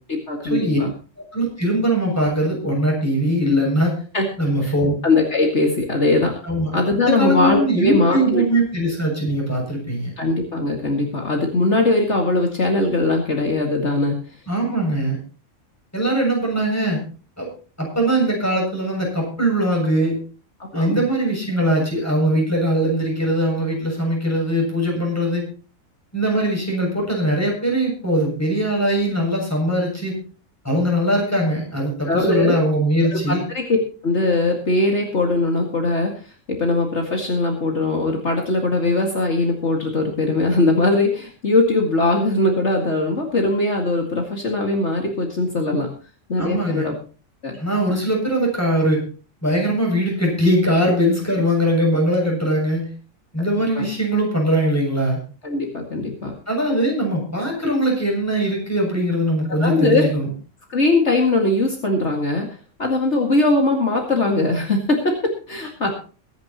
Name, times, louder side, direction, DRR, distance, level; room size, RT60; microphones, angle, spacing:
voice 1, 0.1-0.9 4.1-4.2 4.6-4.7 5.0-6.3 6.7-8.4 10.2-14.2 20.6-21.0 32.1-32.5 33.3-33.8 34.0-45.9 46.3-46.9 47.4-47.6 53.7-53.9 55.4-56.3 59.6-60.1 60.7-62.5 62.8-65.9, left 2 dB, 60° left, 1 dB, 2.5 m, -20 dB
voice 2, 1.3-3.9 4.4-5.0 6.4-6.7 7.0-10.1 14.5-15.2 15.9-17.0 17.4-17.5 17.8-20.2 20.7-25.5 26.1-30.1 30.6-33.4 46.4-46.9 47.6-49.0 49.4-52.9 53.3-55.2 56.5-60.3, right 1 dB, 10° left, -1 dB, 7.2 m, -21 dB
23.0 x 10.5 x 3.0 m, 0.37 s
omnidirectional pair, 1.4 m